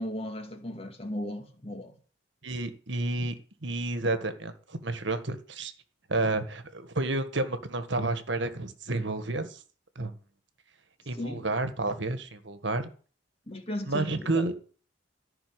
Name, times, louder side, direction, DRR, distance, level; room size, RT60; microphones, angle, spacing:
voice 1, 0.0-2.0 11.1-11.5 13.5-14.4, left 1 dB, 30° left, 2.1 m, -36 dB
voice 2, 2.4-3.3 3.6-5.7 6.1-9.6 9.9-10.1 11.1-12.9 13.9-14.5, right 2 dB, 60° right, 1.6 m, -30 dB
14.0 x 5.9 x 9.5 m
head